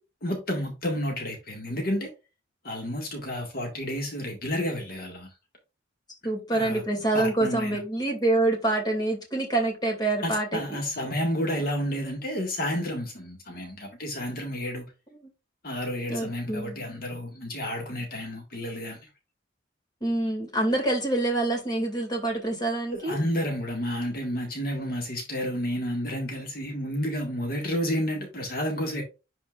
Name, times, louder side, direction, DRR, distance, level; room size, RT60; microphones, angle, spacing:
voice 1, 0.2-2.1 2.6-5.3 6.5-6.8 7.1-7.8 10.2-14.9 15.6-19.1 22.9-29.0, equal, 50° left, 1.7 m, -31 dB
voice 2, 6.2-10.6 16.1-16.8 20.0-23.2, right 2 dB, 20° left, 2.3 m, -26 dB
10.5 x 4.4 x 2.4 m
head